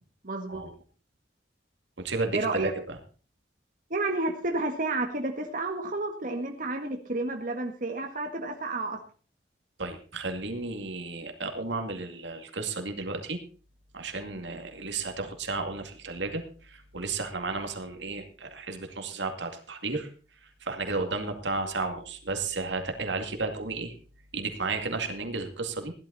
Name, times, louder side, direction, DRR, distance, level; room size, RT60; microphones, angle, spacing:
voice 1, 0.2-0.6 2.3-2.7 3.9-9.0, right 2 dB, 50° right, 3 dB, 1.6 m, -31 dB
voice 2, 2.0-3.0 9.8-13.4 13.9-20.1 20.4-23.9 24.3-25.9, right 3 dB, 80° right, 5 dB, 2.3 m, -33 dB
16.0 x 11.5 x 4.1 m, 0.38 s
head